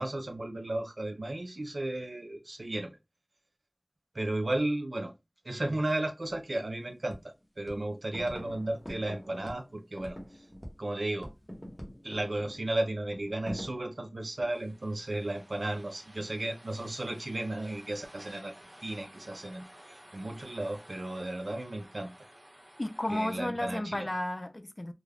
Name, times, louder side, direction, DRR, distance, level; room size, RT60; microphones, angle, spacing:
voice 1, 0.0-2.9 4.1-5.1 5.4-10.2 10.8-11.3 12.0-18.5 18.8-22.1 23.1-24.1, right 1 dB, 85° right, 0.5 m, -34 dB
sound 1, 6.0-6.1 6.3-12.7, equal, 5° right, 0.9 m, -51 dB
sound 2, 6.3-6.4 6.9-7.4 7.7-10.9 11.2-14.8 15.7-16.2, equal, 15° left, 1.0 m, -46 dB
sound 3, 14.2-23.4, equal, 45° right, 1.2 m, -54 dB
voice 2, 22.8-24.9, left 1 dB, 45° left, 0.4 m, -33 dB
2.4 x 2.2 x 3.3 m
wide cardioid pair, 40°, 0 cm